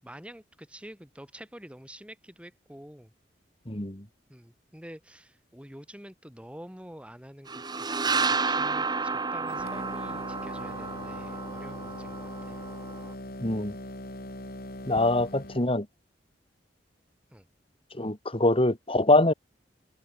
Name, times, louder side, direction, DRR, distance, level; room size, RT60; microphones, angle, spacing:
voice 1, 0.0-3.1 4.3-12.6 17.3-17.5, equal, 5° right, 7.5 m, -47 dB
voice 2, 3.7-4.0 13.4-13.7 14.9-15.9 17.9-19.3, left 2 dB, 30° left, 3.1 m, -24 dB
sound 1, 7.5-13.1, right 4 dB, 25° right, 1.7 m, -31 dB
sound 2, 9.5-15.7, left 1 dB, 60° left, 6.4 m, -41 dB
head